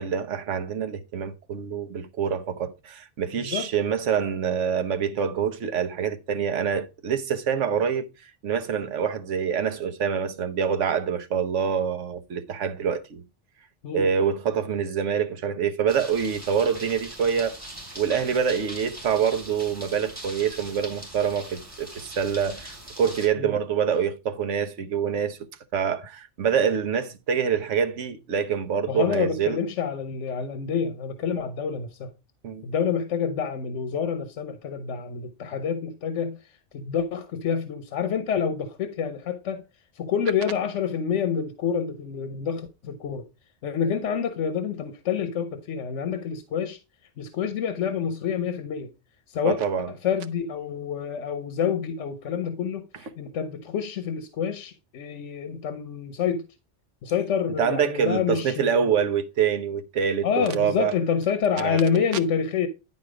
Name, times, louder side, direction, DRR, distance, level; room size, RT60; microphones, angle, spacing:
voice 1, 0.0-13.2 13.9-17.6 18.0-25.4 25.7-29.6 32.4-32.6 49.4-50.0 52.9-53.1 57.5-61.0 61.6-61.8, right 7 dB, 85° right, 1.2 m, -26 dB
voice 2, 3.4-3.7 13.8-14.0 23.4-23.5 28.9-32.1 32.6-36.4 36.7-39.6 39.9-43.2 43.6-46.8 47.2-48.9 49.3-49.6 49.9-56.4 57.0-58.9 60.2-62.7, left 7 dB, 90° left, 1.1 m, -27 dB
sound 1, 15.9-23.3, right 1 dB, 15° right, 3.6 m, -41 dB
10.5 x 4.2 x 4.8 m
omnidirectional pair, 1.2 m